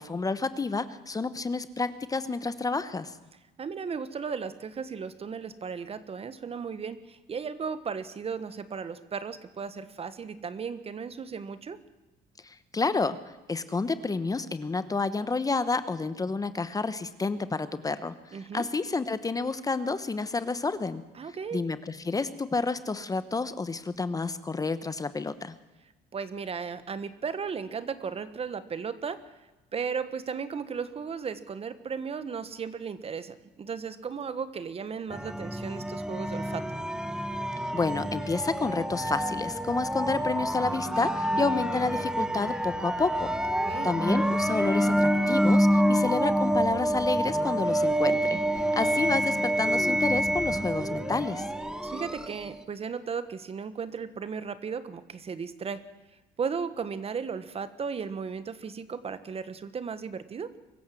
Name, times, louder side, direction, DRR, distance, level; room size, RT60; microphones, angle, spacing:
voice 1, 0.0-3.2 12.4-13.2 13.5-21.0 21.5-25.5 37.7-43.3 43.8-51.5, left 3 dB, 20° left, 13 dB, 1.0 m, -30 dB
voice 2, 3.6-11.8 18.3-18.7 21.2-21.6 26.1-29.2 29.7-36.6 41.2-41.5 43.6-43.9 48.7-48.9 51.8-55.8 56.4-60.5, right 6 dB, 35° right, 13 dB, 1.4 m, -35 dB
sound 1, 35.1-52.6, equal, 5° right, 1.3 m, -27 dB
23.5 x 14.5 x 7.7 m, 1.1 s
cardioid pair, 110°, 17 cm